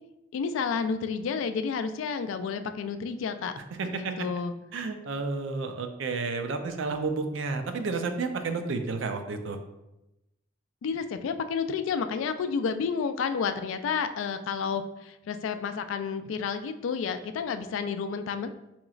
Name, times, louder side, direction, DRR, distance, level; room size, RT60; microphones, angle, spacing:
voice 1, 0.3-3.5 3.8-4.5 10.8-18.5, left 6 dB, 85° left, 10 dB, 0.3 m, -30 dB
voice 2, 3.8-4.3 4.7-9.6, right 4 dB, 75° right, 6 dB, 0.4 m, -31 dB
4.9 x 2.9 x 2.3 m, 0.94 s
head